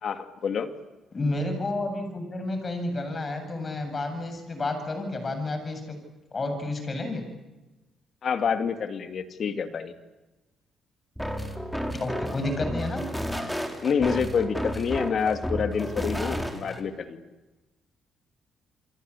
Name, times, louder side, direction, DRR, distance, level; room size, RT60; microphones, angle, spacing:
voice 1, 0.0-0.7 8.2-9.9 13.8-17.2, left 6 dB, 55° left, 8 dB, 2.5 m, -27 dB
voice 2, 1.1-6.0 6.3-7.3 12.0-13.1, left 2 dB, 35° left, 7 dB, 7.8 m, -30 dB
sound 1, 11.2-16.8, equal, ahead, 4.2 m, -32 dB
29.0 x 23.5 x 8.6 m, 1.1 s
cardioid pair, 90°, 0 cm